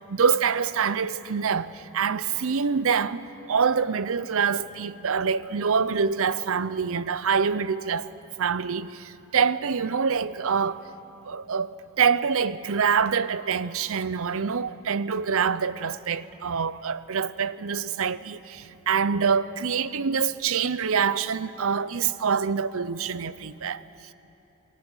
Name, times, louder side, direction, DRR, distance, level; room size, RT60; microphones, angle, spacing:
voice 1, 0.1-8.1 8.4-10.8 11.3-23.8, right 6 dB, 70° right, 0.6 m, -25 dB
29.0 x 20.0 x 6.3 m
head